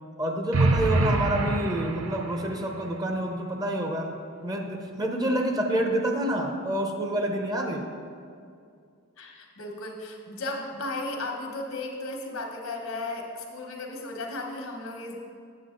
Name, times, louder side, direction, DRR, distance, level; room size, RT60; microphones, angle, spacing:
voice 1, 0.2-7.9, right 1 dB, 20° right, 2 dB, 0.7 m, -28 dB
sound 1, 0.5-2.6, right 2 dB, 75° right, 0.6 m, -25 dB
voice 2, 5.2-5.6 7.6-7.8 9.2-15.2, left 2 dB, 80° left, 2 dB, 1.2 m, -35 dB
8.6 x 7.0 x 3.8 m, 2.3 s
head